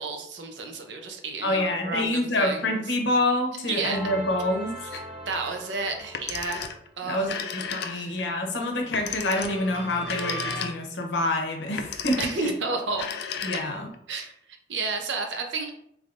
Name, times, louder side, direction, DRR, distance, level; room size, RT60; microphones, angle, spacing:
voice 1, 0.0-2.8 3.7-4.0 4.8-4.9 5.3-7.3 7.8-8.2 12.2-13.1 14.1-14.3 14.7-15.7, right 3 dB, 85° right, 4 dB, 0.6 m, -31 dB
voice 2, 1.4-5.0 7.0-12.5 13.4-13.9, left 1 dB, 80° left, 2 dB, 0.8 m, -27 dB
sound 1, 3.9-6.6 8.9-10.6, right 1 dB, 5° left, 1.0 m, -39 dB
Telephone, 6.0-6.9 7.2-8.2 8.9-11.0 11.7-12.5 12.9-13.9, left 7 dB, 65° left, 0.4 m, -34 dB
3.4 x 3.2 x 2.5 m, 0.70 s
head